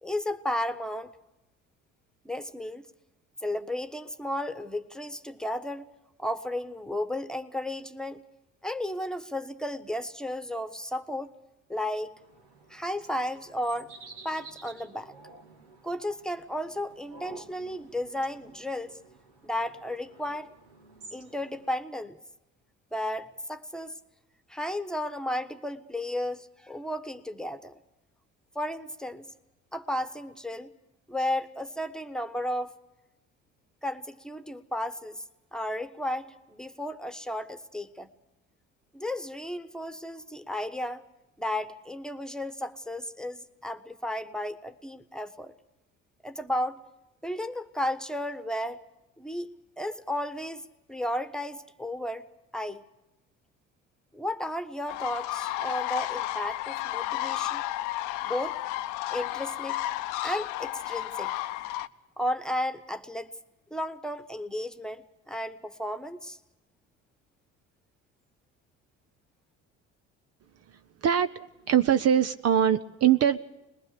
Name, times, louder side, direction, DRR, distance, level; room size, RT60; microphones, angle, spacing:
voice 1, 0.0-1.1 2.2-2.9 3.4-5.9 6.2-8.2 8.6-11.3 11.7-12.1 12.7-13.9 14.2-15.1 15.8-19.0 19.4-20.5 21.1-22.2 22.9-23.9 24.5-27.8 28.5-29.3 29.7-30.7 31.1-32.7 33.8-35.2 35.5-38.1 38.9-41.0 41.4-45.5 46.2-46.8 47.2-48.8 49.2-52.2 52.5-52.8 54.1-57.6 58.2-58.6 59.1-59.8 60.2-61.4 62.2-63.3 63.7-66.4, left 1 dB, ahead, 11 dB, 1.3 m, -33 dB
sound 1, 12.2-21.7, right 3 dB, 85° right, 2.7 m, -51 dB
sound 2, 54.9-61.9, left 15 dB, 70° left, 0.7 m, -32 dB
voice 2, 70.7-71.4 71.7-73.4, right 9 dB, 50° right, 10 dB, 0.8 m, -23 dB
22.5 x 20.5 x 6.7 m, 0.98 s
hypercardioid pair, 60°, 33 cm